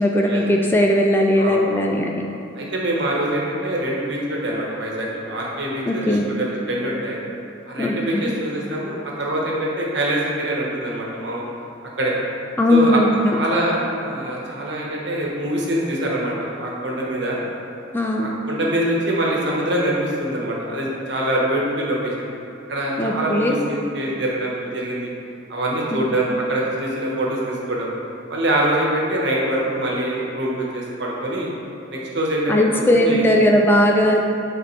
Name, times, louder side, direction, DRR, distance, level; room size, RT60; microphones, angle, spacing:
voice 1, 0.0-2.2 5.9-6.3 7.8-8.4 12.6-13.4 17.9-18.3 23.0-23.6 25.9-26.0 32.5-34.2, left 1 dB, 10° left, 0 dB, 0.3 m, -18 dB
voice 2, 1.4-1.9 2.5-7.2 7.7-11.4 12.0-12.1 12.7-13.0 13.3-17.4 18.2-22.3 22.7-25.1 25.5-27.9 28.3-31.5 31.9-33.2, right 1 dB, 60° right, -4 dB, 1.3 m, -24 dB
9.6 x 4.2 x 3.3 m, 2.7 s
head